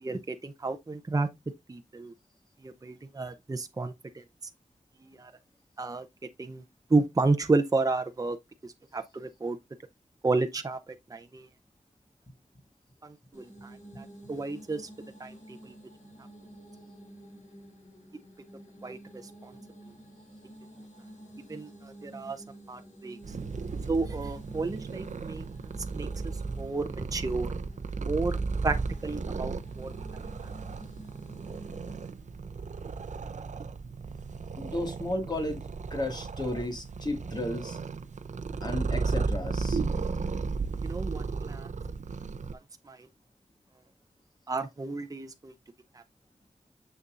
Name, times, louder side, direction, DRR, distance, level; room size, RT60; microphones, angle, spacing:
voice 1, 0.0-1.3 1.7-2.1 2.6-4.2 5.0-5.3 5.8-6.1 6.4-6.6 6.9-8.4 8.6-9.6 10.2-11.5 13.0-14.9 15.2-15.7 18.8-19.0 19.4-19.5 21.5-23.2 23.9-25.4 25.9-26.1 26.6-27.5 28.0-28.4 28.6-28.8 29.0-30.2 40.8-41.7 42.9-43.1 44.5-45.5 45.9-46.0, right 3 dB, 30° right, 0.6 m, -31 dB
sound 1, 13.3-32.2, right 1 dB, 70° left, 3.5 m, -50 dB
Purr, 23.2-42.5, right 4 dB, 70° right, 0.6 m, -34 dB
voice 2, 34.6-35.6 35.9-37.8 38.6-39.8, left 1 dB, 35° left, 1.9 m, -33 dB
7.0 x 6.8 x 2.5 m
wide cardioid pair, 95°, 13 cm